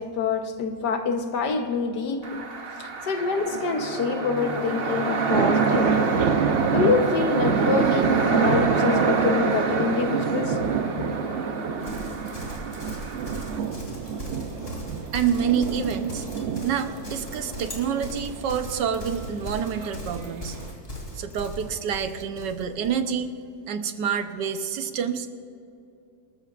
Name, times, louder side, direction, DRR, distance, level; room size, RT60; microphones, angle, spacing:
voice 1, 0.0-2.4 2.8-6.1 6.7-11.2, left 4 dB, 75° left, 1.6 m, -26 dB
sound 1, 2.2-13.6, right 3 dB, 40° right, 1.0 m, -27 dB
sound 2, 4.4-20.7, right 7 dB, 60° right, 0.8 m, -28 dB
Livestock farm animals working animals, 11.8-23.0, equal, 35° left, 3.1 m, -38 dB
voice 2, 15.1-16.3 16.6-20.6 21.1-23.3 23.7-25.3, right 7 dB, 80° right, 1.5 m, -27 dB
25.5 x 13.5 x 2.5 m
omnidirectional pair, 1.9 m